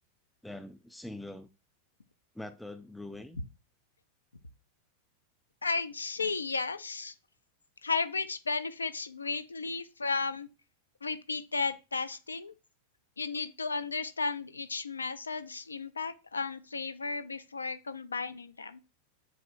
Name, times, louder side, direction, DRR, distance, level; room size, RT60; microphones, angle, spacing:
voice 1, 0.4-1.5 2.3-3.4, left 1 dB, 5° left, 0.3 m, -43 dB
voice 2, 5.6-7.1 7.8-10.5 11.0-12.5 13.2-18.8, left 4 dB, 75° left, 0.4 m, -34 dB
7.4 x 2.6 x 2.4 m
figure-of-eight pair, 90°, 0 cm